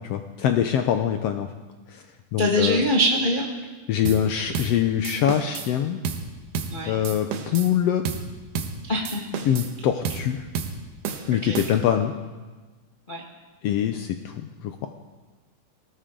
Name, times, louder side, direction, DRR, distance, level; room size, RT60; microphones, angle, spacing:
voice 1, 0.0-1.5 2.3-2.8 3.9-6.0 6.9-8.0 9.5-10.5 11.3-12.1 13.6-14.7, left 9 dB, 85° left, 7 dB, 1.4 m, -24 dB
voice 2, 2.4-3.5 6.7-7.0 8.9-9.2 11.4-11.6 13.1-13.2, equal, 35° left, -2 dB, 0.8 m, -23 dB
sound 1, 4.1-4.3 4.5-4.8 5.0-5.7 6.0-6.3 6.5-6.8 7.0-7.7 8.1-8.3 8.6-8.8 9.1-9.7 10.1-10.3 10.6-10.8 11.0-12.0, right 6 dB, 85° right, 2.8 m, -31 dB
19.5 x 18.0 x 3.8 m, 1.3 s
omnidirectional pair, 3.6 m